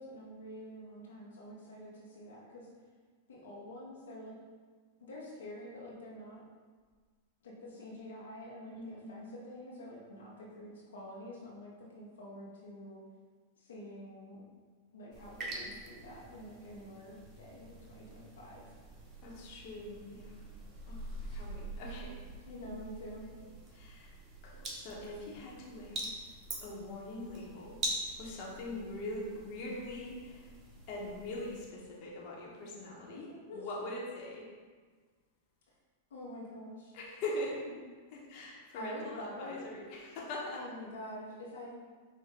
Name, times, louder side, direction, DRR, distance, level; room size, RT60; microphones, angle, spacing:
voice 1, 0.0-2.7 3.3-4.3 5.0-6.4 7.4-13.0 13.6-14.4 14.9-18.6 22.4-23.2 33.1-33.7 36.1-36.9 38.7-39.6 40.5-41.7, left 1 dB, 80° left, -5 dB, 1.0 m, -47 dB
voice 2, 8.7-9.3 19.2-20.4 20.9-22.1 23.1-23.4 23.7-24.1 24.4-26.1 26.6-27.8 28.2-30.5 30.9-34.5 36.9-37.6 38.1-40.6, left 1 dB, 50° left, -3 dB, 1.2 m, -42 dB
sound 1, 15.1-31.7, right 1 dB, 30° right, 1.1 m, -45 dB
5.7 x 2.5 x 3.6 m, 1.5 s
hypercardioid pair, 110°, 0 cm